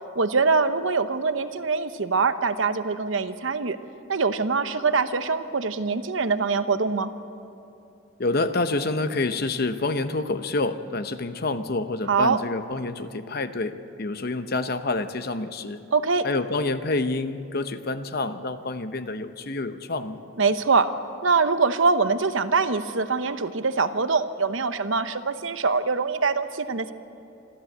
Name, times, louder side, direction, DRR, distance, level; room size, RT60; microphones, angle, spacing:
voice 1, 0.2-3.8 4.1-7.1 12.1-12.4 15.9-16.3 20.4-20.9 21.2-26.9, right 4 dB, 70° right, 11 dB, 0.9 m, -23 dB
voice 2, 8.2-15.8 16.2-20.2, left 2 dB, 50° left, 10 dB, 0.8 m, -28 dB
26.0 x 13.5 x 8.0 m, 2.7 s
head